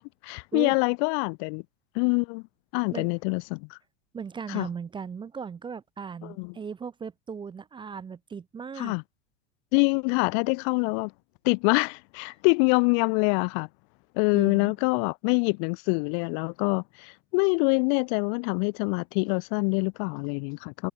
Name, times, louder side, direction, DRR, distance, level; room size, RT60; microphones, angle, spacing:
voice 1, 0.0-1.6 1.9-2.4 2.7-3.8 4.5-4.7 6.2-6.5 8.8-9.0 9.7-11.1 11.4-13.7 14.2-20.9, left 40 dB or more, 50° left, 0.6 m, -25 dB
voice 2, 4.1-9.0 14.3-14.7, right 6 dB, 15° right, 0.6 m, -37 dB
hypercardioid pair, 95°, 32 cm